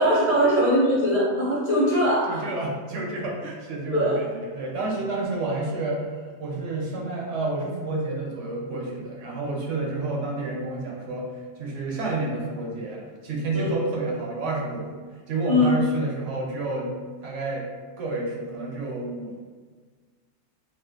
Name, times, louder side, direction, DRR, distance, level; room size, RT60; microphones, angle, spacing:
voice 1, 0.0-2.4 3.9-4.2 13.5-13.8 15.5-15.7, equal, 15° left, -8 dB, 0.6 m, -21 dB
voice 2, 2.3-6.1 6.4-11.3 11.6-15.0 15.3-17.7 18.0-19.4, right 2 dB, 70° right, -2 dB, 0.9 m, -30 dB
2.4 x 2.4 x 3.6 m, 1.5 s
omnidirectional pair, 1.4 m